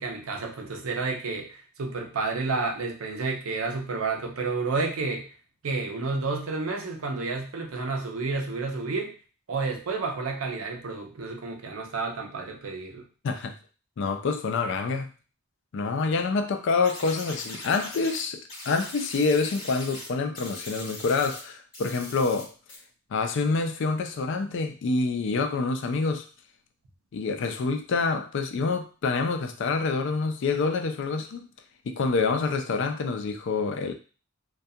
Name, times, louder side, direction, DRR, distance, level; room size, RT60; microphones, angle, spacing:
voice 1, 0.0-5.3 5.6-9.1 9.5-13.1, right 3 dB, 90° right, 0.6 m, -30 dB
voice 2, 14.0-15.1 15.7-22.5 23.1-26.3 27.1-31.5 31.8-33.9, left 4 dB, 60° left, 0.4 m, -27 dB
sound 1, 16.8-18.2 18.5-20.1 20.3-21.4 21.7-22.4 22.7-22.8, left 1 dB, 45° left, 1.2 m, -40 dB
2.3 x 2.2 x 2.7 m
head